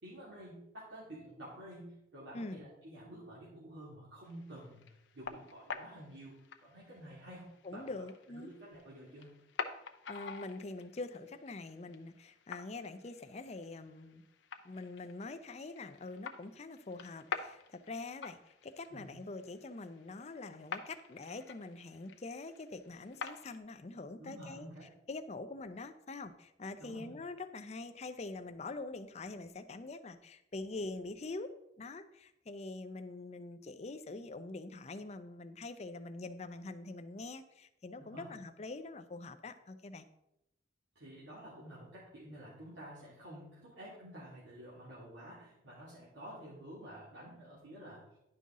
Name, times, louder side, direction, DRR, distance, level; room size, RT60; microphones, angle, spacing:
voice 1, 0.0-9.4 18.9-19.1 24.2-24.9 26.8-27.2 38.0-38.4 41.0-48.1, right 1 dB, 75° right, -8 dB, 2.3 m, -50 dB
voice 2, 2.3-2.7 7.6-8.5 10.1-14.2 14.6-24.7 25.1-40.0, left 3 dB, 35° left, 9 dB, 0.5 m, -44 dB
sound 1, 4.2-23.6, left 5 dB, 80° left, 0.7 m, -48 dB
10.5 x 5.5 x 3.7 m, 0.84 s
head